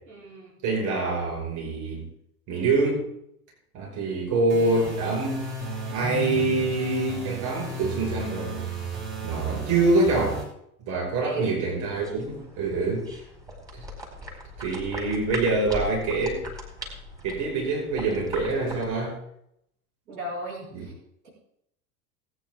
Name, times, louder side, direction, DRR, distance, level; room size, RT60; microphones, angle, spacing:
voice 1, 0.1-0.6 11.2-11.6 20.1-20.9, right 2 dB, 70° right, -2 dB, 5.5 m, -35 dB
voice 2, 0.6-2.0 2.5-3.0 3.7-5.4 5.9-8.6 9.2-10.4 10.8-13.1 13.7-13.8 14.6-16.4 17.2-19.2 20.7-20.9, right 3 dB, 40° right, -1 dB, 5.3 m, -25 dB
sound 1, 4.5-10.4, right 3 dB, 25° right, 6.1 m, -34 dB
sound 2, 11.8-18.9, left 1 dB, 10° right, 4.5 m, -39 dB
19.5 x 9.6 x 3.6 m, 0.75 s
figure-of-eight pair, 85°, 45 cm